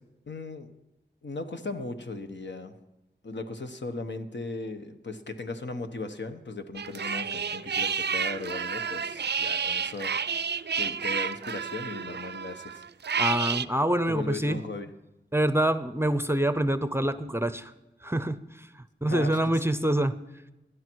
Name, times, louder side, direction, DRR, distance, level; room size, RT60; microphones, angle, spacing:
voice 1, 0.3-0.7 1.2-2.7 3.2-10.1 10.8-12.8 14.1-14.9 19.1-19.6, left 3 dB, 65° left, 6 dB, 1.1 m, -37 dB
sound 1, 6.8-13.7, right 6 dB, 60° right, 0.4 m, -30 dB
voice 2, 13.2-14.6 15.3-17.7 18.0-18.7 19.0-20.2, right 1 dB, 10° right, 12 dB, 0.6 m, -26 dB
17.0 x 11.0 x 4.6 m, 0.97 s
wide cardioid pair, 60°, 20 cm